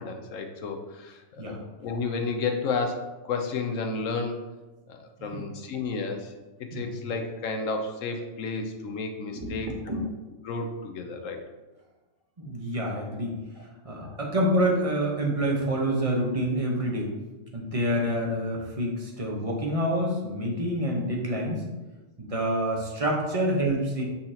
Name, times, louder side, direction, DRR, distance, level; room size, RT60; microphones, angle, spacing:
voice 1, 0.0-4.4 4.9-6.3 6.7-10.1 10.4-11.4 14.0-14.2, left 4 dB, 75° left, 4 dB, 1.1 m, -32 dB
voice 2, 9.3-10.0 12.4-17.1 17.5-21.6 22.2-24.0, equal, 30° right, -1 dB, 1.0 m, -27 dB
6.5 x 5.7 x 2.9 m, 1.2 s
omnidirectional pair, 1.4 m